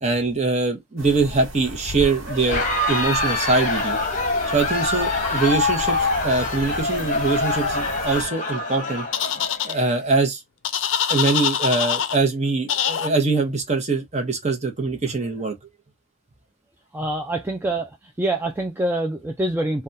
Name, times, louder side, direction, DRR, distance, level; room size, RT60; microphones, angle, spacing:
voice 1, 0.0-4.0 4.5-9.1 9.6-10.4 11.1-15.6, right 3 dB, 30° right, 0.8 m, -23 dB
sound 1, 1.0-8.3, right 1 dB, 70° right, 1.1 m, -35 dB
Crowd, 2.3-9.8, left 3 dB, 35° left, 0.8 m, -25 dB
sound 2, 9.1-9.7 10.6-12.2 12.7-13.1, left 9 dB, 60° left, 0.5 m, -23 dB
voice 2, 16.9-19.8, right 1 dB, 10° right, 0.3 m, -25 dB
3.3 x 2.3 x 2.6 m
head